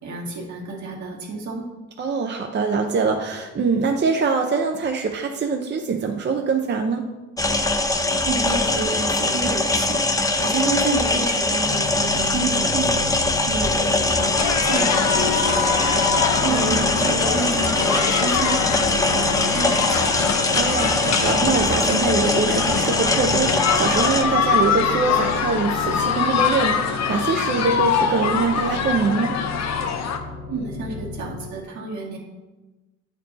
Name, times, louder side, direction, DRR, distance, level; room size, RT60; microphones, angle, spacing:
voice 1, 0.0-1.6 8.2-13.0 13.4-18.6 18.9-20.3 30.5-32.2, right 3 dB, 70° right, -2 dB, 1.9 m, -30 dB
voice 2, 2.0-7.1 16.4-16.9 20.5-29.3, right 4 dB, 35° right, 3 dB, 0.6 m, -23 dB
sound 1, 7.4-24.2, left 2 dB, 10° left, 0.6 m, -22 dB
sound 2, 11.6-31.5, left 4 dB, 90° left, 1.7 m, -35 dB
sound 3, 14.1-30.2, left 6 dB, 65° left, 0.8 m, -24 dB
8.7 x 4.5 x 4.0 m, 1.1 s
cardioid pair, 90°, 30 cm